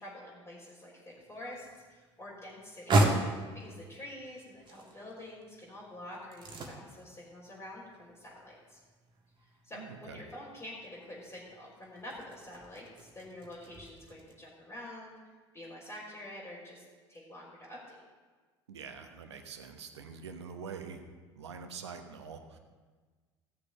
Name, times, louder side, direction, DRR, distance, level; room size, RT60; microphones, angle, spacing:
voice 1, 0.0-3.2 3.5-8.8 9.6-15.2 15.5-18.0, left 1 dB, 20° left, -9 dB, 3.8 m, -47 dB
sound 1, 1.1-14.3, right 2 dB, 35° right, 1.7 m, -37 dB
voice 2, 9.7-10.2 18.7-21.0 21.4-22.6, right 6 dB, 75° right, 6 dB, 1.0 m, -45 dB
15.5 x 6.8 x 5.7 m, 1.4 s
figure-of-eight pair, 65°, 14 cm